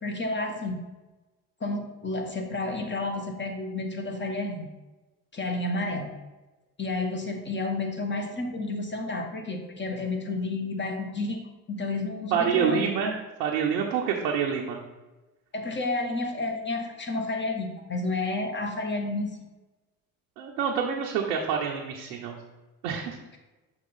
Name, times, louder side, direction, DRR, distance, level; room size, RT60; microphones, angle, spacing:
voice 1, 0.0-0.8 1.6-4.7 5.3-6.1 6.8-11.4 11.7-12.9 15.5-19.3, left 2 dB, 25° left, 3 dB, 1.4 m, -31 dB
voice 2, 12.3-14.8 20.4-22.4 22.8-23.2, right 7 dB, 85° right, -1 dB, 0.8 m, -27 dB
6.2 x 2.9 x 5.5 m, 1.1 s
hypercardioid pair, 60°, 43 cm